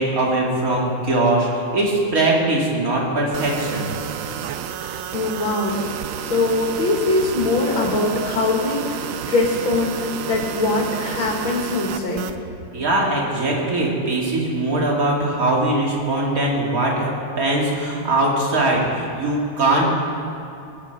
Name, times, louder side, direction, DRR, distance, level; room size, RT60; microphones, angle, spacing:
voice 1, 0.0-3.9 12.7-19.8, right 2 dB, 45° right, -2 dB, 2.7 m, -21 dB
sound 1, 3.3-12.4, right 8 dB, 85° right, 0.7 m, -31 dB
voice 2, 5.1-12.2, left 2 dB, 85° left, -1 dB, 2.7 m, -22 dB
19.5 x 9.4 x 5.2 m, 2.8 s
omnidirectional pair, 2.1 m